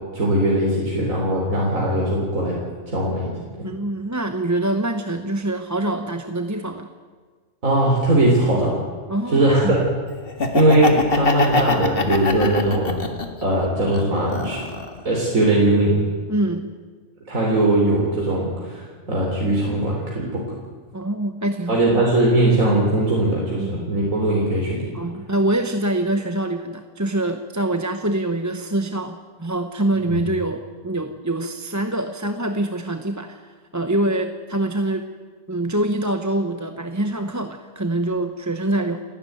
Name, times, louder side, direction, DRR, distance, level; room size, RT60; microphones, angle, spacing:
voice 1, 0.1-2.6 2.9-3.3 7.6-8.8 9.3-9.8 10.5-13.1 13.4-14.6 15.0-16.0 17.3-20.4 21.7-24.9 30.1-30.2, right 1 dB, 90° right, -3 dB, 4.0 m, -20 dB
voice 2, 3.6-6.9 9.1-9.7 16.3-16.7 20.9-22.1 23.6-24.1 24.9-33.4 33.7-35.1 35.5-39.0, right 1 dB, 15° right, 7 dB, 0.9 m, -25 dB
Laughter, 10.3-13.4 13.9-15.0, left 3 dB, 45° left, 2.0 m, -23 dB
29.5 x 12.5 x 9.3 m, 1.5 s
omnidirectional pair, 1.4 m